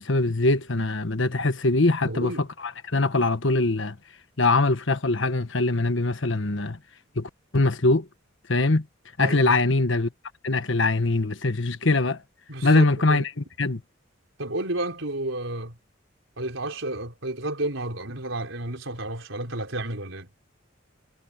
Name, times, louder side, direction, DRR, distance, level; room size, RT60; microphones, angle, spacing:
voice 1, 0.0-2.3 2.8-4.0 4.4-6.8 7.1-8.1 8.5-8.9 9.2-10.1 10.4-12.2 12.6-13.3 13.6-13.8, left 2 dB, 65° left, 1.4 m, -22 dB
voice 2, 2.1-2.5 9.2-9.6 12.5-13.2 14.4-15.8 16.4-20.3, right 1 dB, 75° right, 4.7 m, -31 dB
head